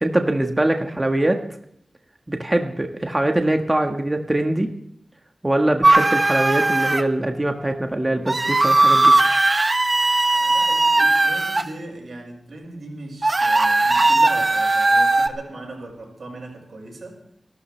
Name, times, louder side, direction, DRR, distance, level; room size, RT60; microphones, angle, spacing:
voice 1, 0.0-1.4 2.3-4.7 5.4-9.2, right 1 dB, 25° right, 4 dB, 1.5 m, -22 dB
sound 1, 5.8-7.0 8.3-11.6 13.2-15.3, right 2 dB, 45° right, 1.1 m, -18 dB
voice 2, 10.3-17.2, right 2 dB, 80° right, 1 dB, 6.4 m, -38 dB
29.5 x 12.5 x 3.4 m, 0.71 s
cardioid pair, 40°, 0 cm